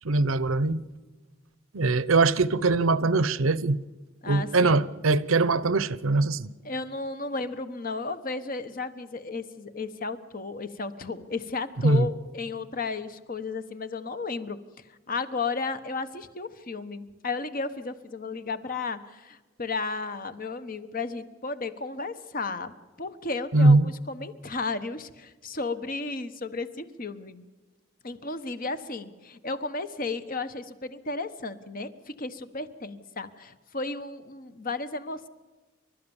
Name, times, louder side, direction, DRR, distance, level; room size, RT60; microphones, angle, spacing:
voice 1, 0.0-0.8 1.7-3.8 4.3-6.5 11.8-12.1 23.5-23.9, right 3 dB, 85° right, 0.9 m, -22 dB
voice 2, 4.2-4.8 6.6-14.6 14.9-27.4 28.0-35.3, left 3 dB, 45° left, 1.2 m, -34 dB
30.0 x 13.0 x 7.2 m
head